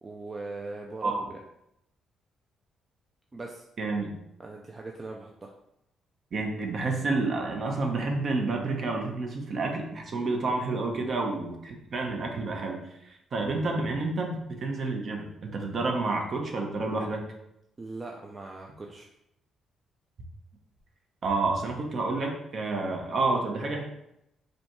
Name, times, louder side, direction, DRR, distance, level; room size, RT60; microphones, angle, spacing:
voice 1, 0.0-1.1 3.3-3.6 4.4-5.5 10.4-10.5 13.6-13.7 17.8-19.1, right 2 dB, 30° right, 0 dB, 0.4 m, -40 dB
voice 2, 3.8-4.1 6.3-17.3 21.2-23.8, right 3 dB, 50° right, 2 dB, 0.8 m, -29 dB
5.0 x 2.3 x 3.0 m, 0.82 s
cardioid pair, 90°, 0 cm